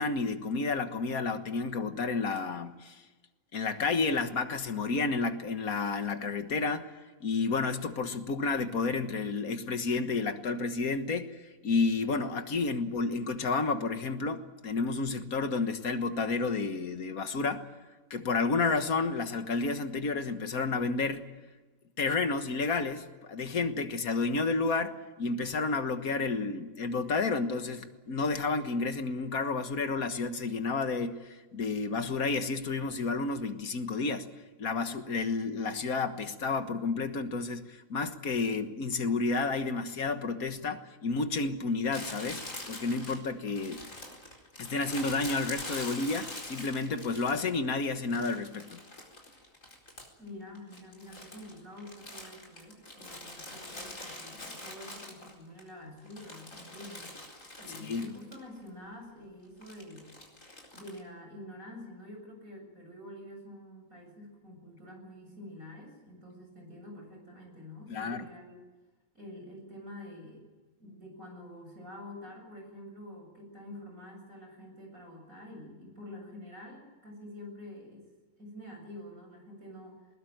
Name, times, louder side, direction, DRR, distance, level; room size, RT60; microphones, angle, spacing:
voice 1, 0.0-3.0 3.5-6.9 7.2-11.4 11.6-17.6 18.1-21.3 22.0-34.3 34.6-43.8 44.6-48.8 57.7-58.1 67.9-68.3, left 4 dB, 85° left, 9 dB, 1.9 m, -31 dB
Crumpling crinkling, 41.9-47.7 48.1-50.3 50.6-55.6 56.0-58.4 58.7-58.8 59.6-61.0, left 1 dB, 65° left, 4.9 m, -44 dB
voice 2, 50.2-57.2 57.6-60.1 60.7-68.6 69.1-70.4 70.8-78.0 78.4-80.1, left 1 dB, 75° right, 2 dB, 8.0 m, -47 dB
20.5 x 20.5 x 9.2 m, 1.3 s
omnidirectional pair, 1.5 m